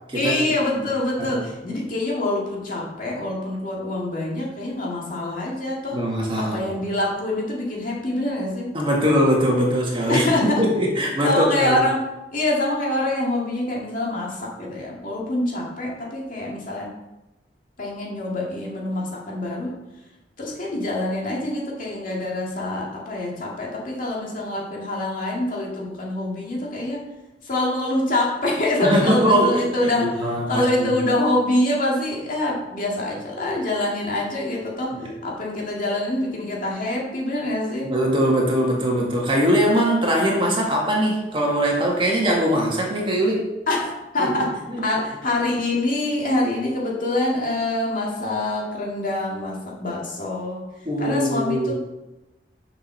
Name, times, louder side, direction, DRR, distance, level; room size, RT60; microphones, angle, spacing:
voice 1, 0.1-6.1 6.4-8.7 10.1-10.7 11.2-12.0 12.3-16.9 17.8-19.8 20.4-27.1 27.4-38.0 43.7-50.6 51.0-51.7, left 1 dB, 50° left, -3 dB, 2.3 m, -25 dB
voice 2, 5.9-6.7 8.7-11.8 28.8-31.0 35.0-35.1 37.8-43.5 44.2-44.3 44.7-44.8 50.9-51.7, equal, 30° right, -1 dB, 1.8 m, -21 dB
7.5 x 6.0 x 5.7 m, 1.0 s
head